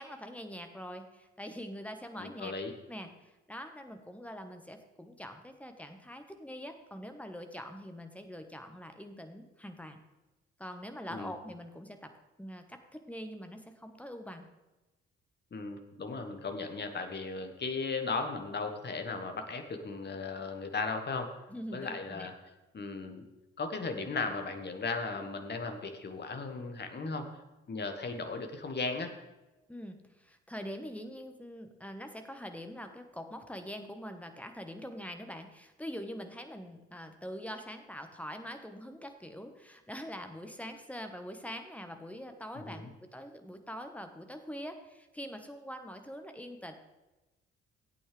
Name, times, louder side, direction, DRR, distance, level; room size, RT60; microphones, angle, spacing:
voice 1, 0.0-2.5 2.9-10.0 10.6-12.1 12.4-12.8 13.1-14.5 21.5-22.3 29.7-46.7, equal, 5° left, 6 dB, 1.2 m, -44 dB
voice 2, 2.1-2.7 11.1-11.3 15.5-21.3 21.7-22.3 22.7-23.2 23.6-27.3 27.7-29.1 42.5-42.9, left 4 dB, 30° left, 6 dB, 1.4 m, -36 dB
16.5 x 8.5 x 3.3 m, 1.1 s
figure-of-eight pair, 45°, 35 cm